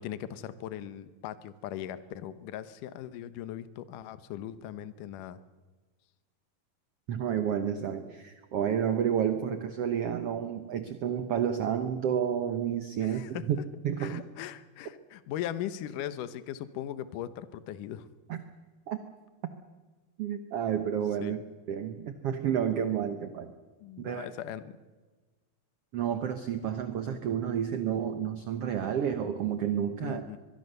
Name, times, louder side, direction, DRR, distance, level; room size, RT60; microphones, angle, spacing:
voice 1, 0.0-5.4 13.0-13.4 14.0-18.1 21.2-21.4 23.8-24.7 30.0-30.4, left 11 dB, 70° left, 13 dB, 2.4 m, -39 dB
voice 2, 7.1-13.6 13.8-14.2 18.3-18.4 18.9-19.0 20.2-21.4 21.7-23.5 24.0-24.3 25.9-30.2, right 8 dB, 70° right, 9 dB, 1.5 m, -30 dB
23.0 x 22.0 x 6.7 m, 1.3 s
omnidirectional pair, 4.1 m